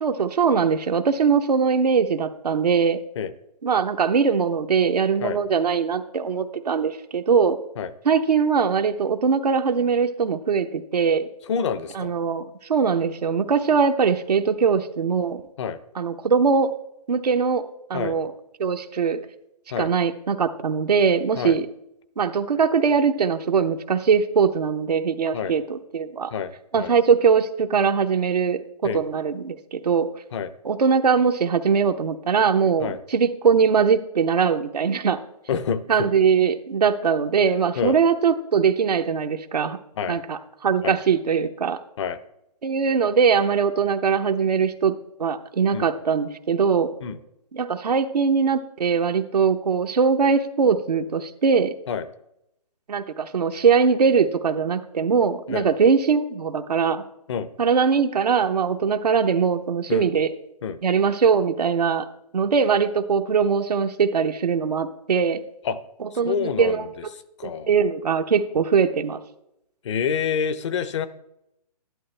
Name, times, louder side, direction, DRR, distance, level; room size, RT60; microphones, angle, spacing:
voice 1, 0.0-3.0 3.6-7.6 8.0-11.3 11.9-15.4 15.9-16.7 17.1-18.3 18.6-19.2 19.8-21.7 22.2-26.3 26.7-30.1 30.6-35.2 35.9-39.8 40.1-41.8 42.6-44.9 45.2-46.9 47.5-51.7 52.9-57.0 57.6-60.3 60.8-62.1 62.3-65.4 66.0-67.1 67.4-69.2, right 6 dB, 85° right, 5 dB, 0.9 m, -21 dB
voice 2, 11.5-12.1 15.6-15.8 17.9-18.2 19.7-19.9 21.4-21.5 25.3-25.5 26.3-26.5 26.8-26.9 28.8-29.0 30.3-30.5 32.8-33.0 35.5-36.1 37.8-38.0 40.0-40.2 40.8-41.0 42.0-42.2 45.7-45.9 47.0-47.2 51.9-52.1 55.5-55.7 57.3-57.5 59.9-60.1 60.6-60.8 65.6-65.8 66.3-66.9 67.4-67.7 69.8-71.1, left 7 dB, 50° left, 14 dB, 0.7 m, -27 dB
12.0 x 11.0 x 3.3 m, 0.83 s
hypercardioid pair, 150°, 20 cm